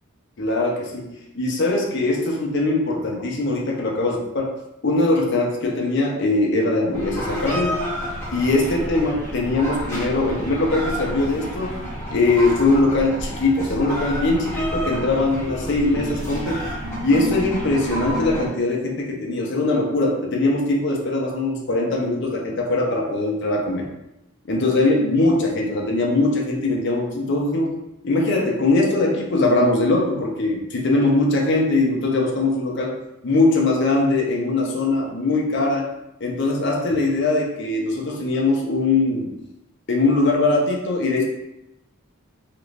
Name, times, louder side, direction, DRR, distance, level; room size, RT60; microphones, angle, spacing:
voice 1, 0.4-1.1 1.3-4.6 4.8-7.8 8.3-11.8 12.1-16.7 17.0-23.9 24.5-27.8 28.0-33.0 33.2-35.9 36.2-39.3 39.9-41.2, left 2 dB, 55° left, -1 dB, 0.6 m, -21 dB
sound 1, 6.9-18.5, equal, 10° left, 1.0 m, -30 dB
2.9 x 2.5 x 3.2 m, 0.87 s
head